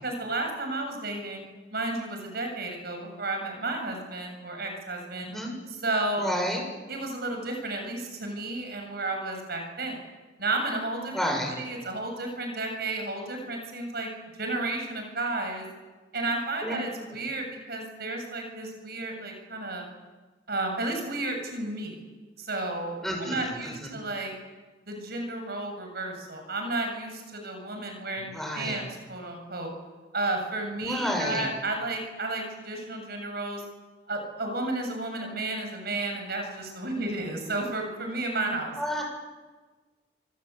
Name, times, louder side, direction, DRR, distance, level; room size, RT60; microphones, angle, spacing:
voice 1, 0.0-1.4 1.7-5.3 5.7-6.3 6.9-10.0 10.4-14.1 14.4-15.7 16.1-19.9 20.5-22.0 22.4-24.3 24.9-29.7 30.1-33.6 34.1-38.7, right 2 dB, 60° right, 4 dB, 7.6 m, -32 dB
voice 2, 5.2-5.5 6.2-6.6 11.1-11.5 16.6-16.7 23.0-23.9 28.3-28.8 30.8-31.5 38.8-39.0, equal, ahead, 1 dB, 7.1 m, -30 dB
27.0 x 26.5 x 8.4 m, 1.3 s
head